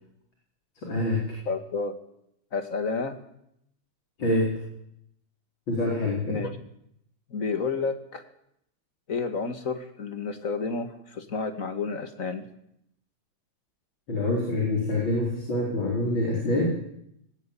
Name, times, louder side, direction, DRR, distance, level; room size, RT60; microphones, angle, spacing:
voice 1, 0.8-1.2 4.2-4.6 5.7-6.5 14.1-16.7, left 1 dB, 85° left, -2 dB, 5.3 m, -26 dB
voice 2, 1.5-2.0 2.5-3.2 6.3-6.5 7.3-8.2 9.1-12.5, left 4 dB, 45° left, 8 dB, 2.3 m, -30 dB
19.0 x 17.5 x 8.6 m, 0.74 s
omnidirectional pair, 2.1 m